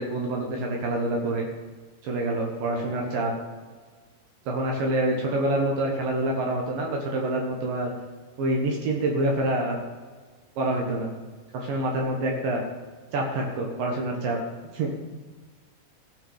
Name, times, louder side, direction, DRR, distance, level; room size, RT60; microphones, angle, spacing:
voice 1, 0.0-1.5 2.0-3.3 4.5-7.9 8.4-9.8 10.6-11.1 11.5-12.6 13.1-14.4 14.7-14.9, right 1 dB, 70° right, 0 dB, 3.0 m, -26 dB
16.0 x 6.0 x 5.6 m, 1.4 s
omnidirectional pair, 4.4 m